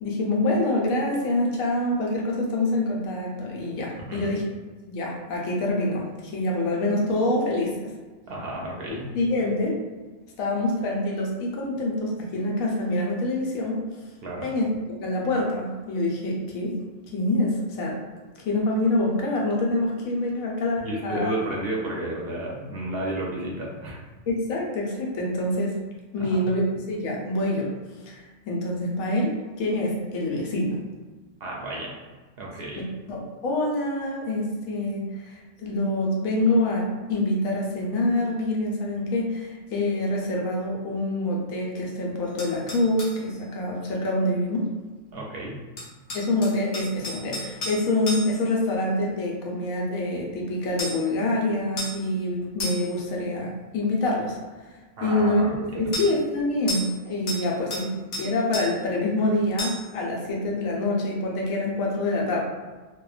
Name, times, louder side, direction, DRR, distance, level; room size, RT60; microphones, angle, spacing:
voice 1, 0.0-4.4 4.9-7.9 9.1-9.8 10.4-13.8 14.4-14.7 15.0-16.8 17.1-18.0 18.4-21.4 24.3-25.7 26.1-27.7 28.0-30.8 32.8-32.9 33.1-44.7 46.1-54.4 55.0-62.4, left 1 dB, 85° left, -2 dB, 1.1 m, -26 dB
voice 2, 8.3-9.1 14.2-14.5 20.8-24.0 26.2-26.4 31.4-32.0 32.4-32.8 45.1-45.6 55.0-55.8, right 1 dB, 60° right, -3 dB, 0.7 m, -32 dB
sound 1, 42.4-43.2 45.8-48.5 50.8-51.1 51.8-52.0 52.6-53.0 55.9-56.1 56.7-57.0 57.3-57.9 58.1-58.7 59.6-59.9, left 1 dB, 55° left, 0.8 m, -33 dB
2.8 x 2.1 x 2.3 m, 1.3 s
omnidirectional pair, 1.4 m